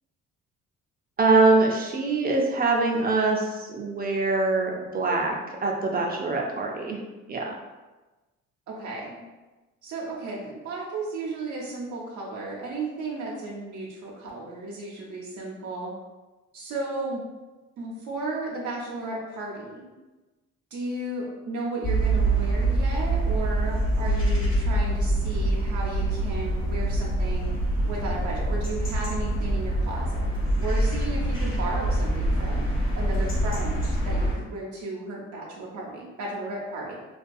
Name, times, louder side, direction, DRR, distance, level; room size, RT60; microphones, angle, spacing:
voice 1, 1.2-5.4 5.6-7.0 7.3-7.5, right 3 dB, 30° right, 0 dB, 0.4 m, -23 dB
voice 2, 8.7-9.2 9.8-15.9 16.5-17.2 17.8-19.8 20.7-27.5 27.8-30.3 30.6-32.7 32.9-36.9, right 2 dB, 75° right, -3 dB, 0.6 m, -34 dB
sound 1, 21.8-34.3, right 1 dB, 40° left, 0.9 m, -25 dB
2.3 x 2.2 x 2.5 m, 1.2 s
cardioid pair, 90°, 30 cm